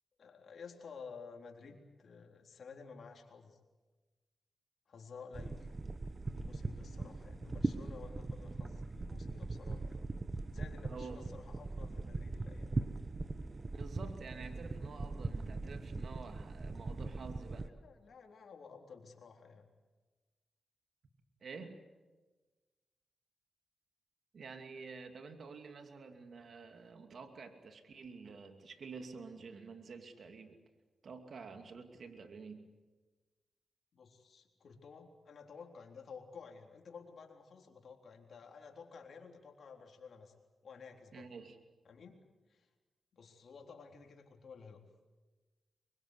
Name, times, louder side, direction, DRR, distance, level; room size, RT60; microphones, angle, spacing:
voice 1, 0.2-3.6 4.9-5.8 6.3-10.1 10.5-12.8 17.6-19.7 33.9-40.3 40.6-41.3 41.8-42.7 43.1-44.8, left 5 dB, 70° left, 2 dB, 3.7 m, -53 dB
sound 1, 5.3-17.7, right 3 dB, 40° right, 1.2 m, -40 dB
voice 2, 10.8-11.2 13.7-17.7 21.4-21.8 24.3-30.6 31.0-32.7 41.1-41.6, right 4 dB, 65° right, 6 dB, 2.7 m, -49 dB
24.5 x 22.5 x 8.2 m, 1.3 s
cardioid pair, 50°, 0 cm